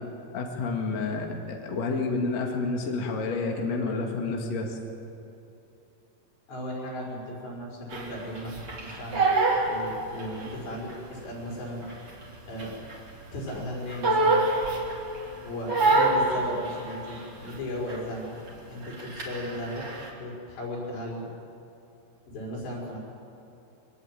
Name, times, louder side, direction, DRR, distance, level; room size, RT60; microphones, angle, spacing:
voice 1, 0.3-4.8, left 3 dB, 45° left, 1 dB, 2.4 m, -29 dB
voice 2, 6.5-9.2 9.6-11.9 12.5-12.7 13.3-14.4 15.4-18.3 18.7-19.9 20.2-21.3 22.3-23.0, left 1 dB, 60° left, -3 dB, 7.3 m, -36 dB
Crying sobbing, 7.9-10.6 10.9-13.2 13.5-15.2 15.7-17.6 17.9-18.2 18.5-20.1, right 3 dB, 30° right, 3.5 m, -26 dB
24.5 x 20.0 x 9.0 m, 2.8 s
omnidirectional pair, 5.6 m